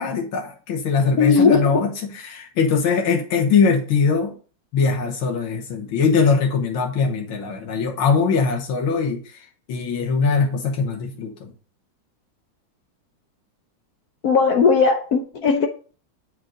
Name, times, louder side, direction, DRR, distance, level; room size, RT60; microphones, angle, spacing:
voice 1, 0.0-4.4 4.7-9.2 9.7-11.5, left 5 dB, 90° left, 2.0 m, -21 dB
voice 2, 1.2-1.6 14.2-15.7, left 5 dB, 65° left, 1.0 m, -17 dB
7.4 x 4.6 x 3.8 m
omnidirectional pair, 2.2 m